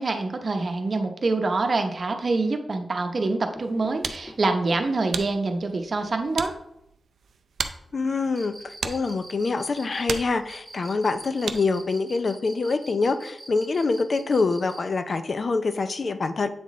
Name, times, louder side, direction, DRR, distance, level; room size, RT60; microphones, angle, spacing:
voice 1, 0.0-6.5, right 3 dB, 50° right, 5 dB, 0.8 m, -25 dB
sound 1, 1.6-2.2 2.9-3.0 3.3-5.1 5.6-5.7 5.9-6.0 6.3-6.4, equal, 15° left, 1.6 m, -48 dB
sound 2, 3.6-11.9, right 6 dB, 85° right, 0.4 m, -37 dB
voice 2, 7.9-16.5, left 3 dB, 50° left, 10 dB, 0.4 m, -25 dB
Cricket, 8.3-14.9, right 2 dB, 20° right, 1.4 m, -44 dB
7.9 x 3.8 x 3.6 m, 0.80 s
cardioid pair, 85°, 0 cm